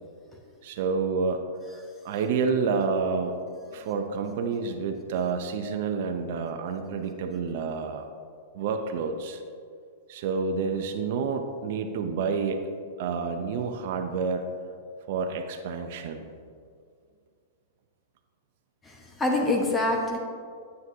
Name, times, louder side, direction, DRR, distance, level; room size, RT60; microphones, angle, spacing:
voice 1, 0.6-1.4 2.0-3.4 3.7-8.1 8.5-9.4 10.1-12.6 13.0-14.5 15.0-16.3, right 5 dB, 55° right, 5 dB, 0.6 m, -29 dB
voice 2, 18.9-20.2, left 2 dB, 15° left, 1 dB, 1.0 m, -25 dB
9.3 x 7.9 x 2.7 m, 2.2 s
figure-of-eight pair, 100°, 0 cm